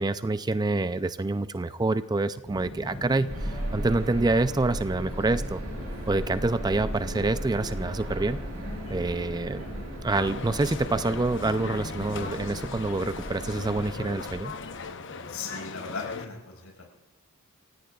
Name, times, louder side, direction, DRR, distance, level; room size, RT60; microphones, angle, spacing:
voice 1, 0.0-5.6 6.1-8.4 8.9-9.7 10.0-14.5, right 2 dB, 20° right, 12 dB, 0.4 m, -27 dB
Subway metro underground, 2.4-14.4, left 1 dB, 30° left, 5.4 m, -41 dB
sound 1, 3.3-14.8, right 1 dB, 80° right, 4.3 m, -37 dB
sound 2, 10.1-16.3, left 4 dB, 60° left, 1.0 m, -38 dB
voice 2, 15.3-16.8, left 4 dB, 80° left, 0 dB, 5.7 m, -38 dB
28.0 x 17.0 x 2.4 m, 1.0 s
head